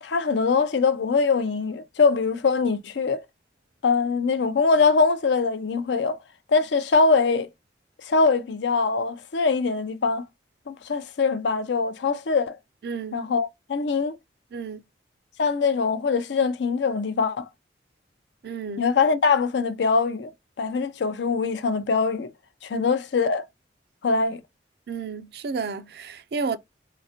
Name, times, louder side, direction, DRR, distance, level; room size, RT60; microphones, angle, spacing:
voice 1, 0.0-3.2 3.8-6.2 6.5-7.5 8.1-10.2 10.7-12.6 13.1-14.2 15.4-17.5 18.8-20.3 20.6-22.3 22.6-23.4 24.0-24.4, left 4 dB, 80° left, 0.5 m, -23 dB
voice 2, 12.8-13.2 14.5-14.8 18.4-18.8 22.7-22.9 24.9-26.6, right 5 dB, 60° right, 0.4 m, -31 dB
3.8 x 2.1 x 2.7 m
head